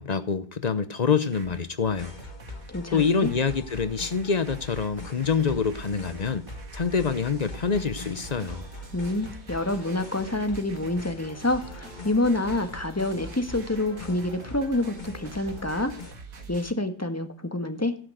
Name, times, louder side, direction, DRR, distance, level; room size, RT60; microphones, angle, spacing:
voice 1, 0.0-2.1 2.9-6.4 6.7-8.7, left 5 dB, 85° left, 11 dB, 0.3 m, -26 dB
sound 1, 1.1-2.7 3.3-16.7, right 3 dB, 50° right, 2.1 m, -46 dB
sound 2, 1.8-16.1, left 2 dB, 25° left, 1.6 m, -43 dB
voice 2, 2.7-3.3 8.9-15.9 16.5-18.0, left 2 dB, 10° left, 7 dB, 1.4 m, -27 dB
16.0 x 10.0 x 7.9 m, 0.43 s
omnidirectional pair, 2.0 m